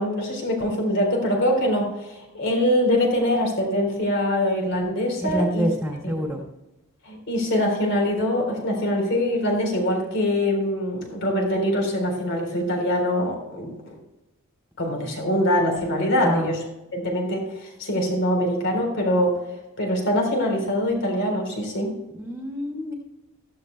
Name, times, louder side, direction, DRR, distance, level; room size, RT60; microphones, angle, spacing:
voice 1, 0.0-5.7 6.0-6.1 7.1-13.7 14.8-16.6 16.9-19.4 19.8-21.9, left 1 dB, 55° left, 2 dB, 3.8 m, -23 dB
voice 2, 5.2-6.4 16.2-16.5 22.1-22.9, equal, ahead, -2 dB, 2.5 m, -26 dB
16.0 x 13.5 x 2.2 m, 0.98 s
head